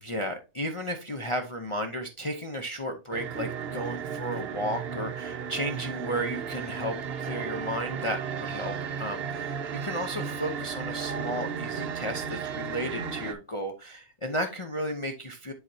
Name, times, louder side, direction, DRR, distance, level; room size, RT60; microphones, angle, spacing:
voice 1, 0.0-15.5, equal, 30° left, 3 dB, 0.6 m, -34 dB
sound 1, 3.1-13.3, right 7 dB, 55° right, 0.9 m, -34 dB
10.5 x 4.0 x 2.7 m, 0.29 s
omnidirectional pair, 1.3 m